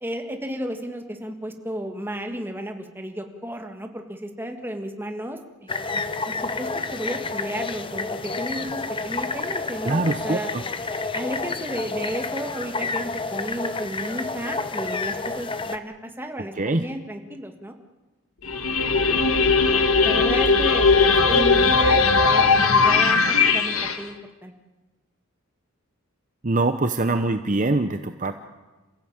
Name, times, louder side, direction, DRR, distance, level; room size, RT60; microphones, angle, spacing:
voice 1, 0.0-10.5 11.1-17.8 20.0-20.9 21.3-22.0 22.3-24.5, equal, 10° right, 4 dB, 1.8 m, -33 dB
sound 1, 5.7-15.8, left 3 dB, 25° left, 0.9 m, -30 dB
voice 2, 9.8-10.6 16.6-16.8 21.3-21.5 26.4-28.3, right 2 dB, 35° right, 8 dB, 0.8 m, -23 dB
sound 2, 18.4-24.0, left 4 dB, 75° left, 1.8 m, -18 dB
28.0 x 15.0 x 8.8 m, 1.2 s
head